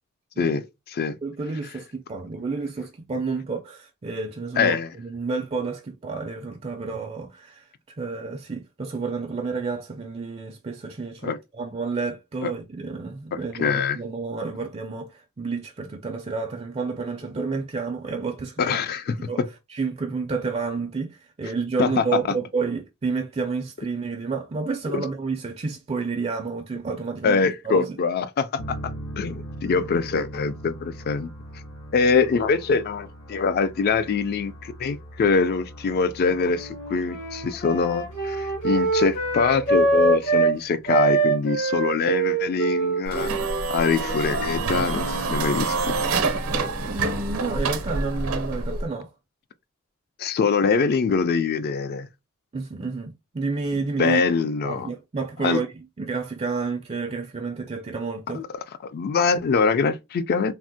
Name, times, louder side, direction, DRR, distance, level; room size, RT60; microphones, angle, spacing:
voice 1, 0.4-1.2 4.6-4.9 11.2-11.4 12.4-12.5 13.3-14.0 18.6-19.5 21.8-22.0 24.9-25.0 27.2-31.3 31.9-43.3 43.7-46.0 50.2-52.1 54.0-54.9 55.4-55.6 58.3-58.5 58.8-60.5, left 5 dB, 45° left, 0.3 m, -24 dB
voice 2, 1.2-7.7 8.0-18.8 19.3-19.4 19.7-28.0 46.8-49.1 52.5-54.2 54.6-58.4, right 4 dB, 30° right, 0.4 m, -30 dB
sound 1, 28.6-41.2, right 1 dB, 70° left, 0.7 m, -41 dB
Wind instrument woodwind instrument, 36.5-40.6 40.9-45.3, right 3 dB, 85° left, 1.9 m, -24 dB
sound 2, 43.1-48.9, right 3 dB, 70° right, 0.6 m, -27 dB
3.4 x 2.1 x 2.6 m
head